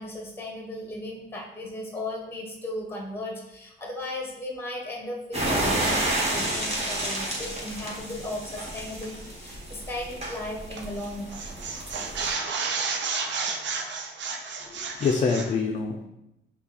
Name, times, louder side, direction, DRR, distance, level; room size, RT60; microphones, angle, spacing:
voice 1, 0.0-11.4, left 1 dB, 10° left, 0 dB, 1.2 m, -36 dB
sound 1, 5.3-12.3, right 1 dB, 30° right, 1.7 m, -30 dB
sound 2, 10.8-11.0 11.3-15.5, right 5 dB, 65° right, 0.7 m, -31 dB
voice 2, 14.7-16.1, left 5 dB, 40° left, 3 dB, 0.5 m, -26 dB
5.5 x 2.4 x 4.1 m, 0.88 s
cardioid pair, 90°, 20 cm